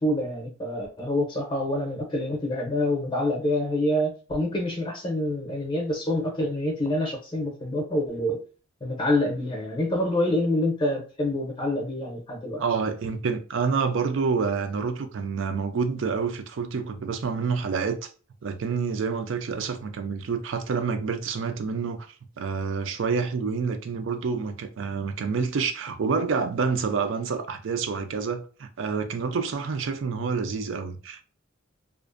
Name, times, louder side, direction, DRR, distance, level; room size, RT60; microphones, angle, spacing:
voice 1, 0.0-8.4 8.8-12.6, left 1 dB, 25° left, 0.6 m, -26 dB
voice 2, 12.6-18.1 18.4-22.1 22.4-31.2, right 5 dB, 70° right, 0.4 m, -28 dB
2.4 x 2.0 x 2.4 m
head